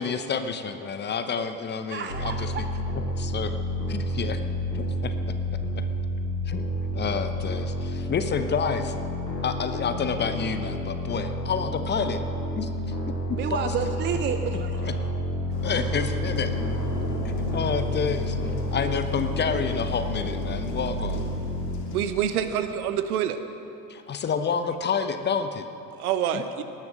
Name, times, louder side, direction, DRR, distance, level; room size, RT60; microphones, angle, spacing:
voice 1, 0.0-2.5 3.2-3.6 3.9-4.4 4.7-5.3 5.7-5.8 6.5-8.9 9.4-12.2 12.6-12.7 13.3-13.7 14.8-14.9 15.6-16.5 17.5-18.4 18.7-21.2 23.9-25.7 26.3-26.4, left 6 dB, 20° left, 9 dB, 0.8 m, -29 dB
voice 2, 1.9-2.6 13.3-14.9, right 7 dB, 25° right, 7 dB, 0.6 m, -30 dB
sound 1, 2.1-21.8, left 1 dB, 85° left, 2.1 m, -30 dB
sound 2, 15.5-22.5, left 2 dB, 50° left, 3.2 m, -38 dB
voice 3, 21.9-23.4 26.0-26.6, right 9 dB, 60° right, 10 dB, 1.1 m, -26 dB
19.0 x 11.0 x 6.4 m, 2.8 s
figure-of-eight pair, 70°, 50 cm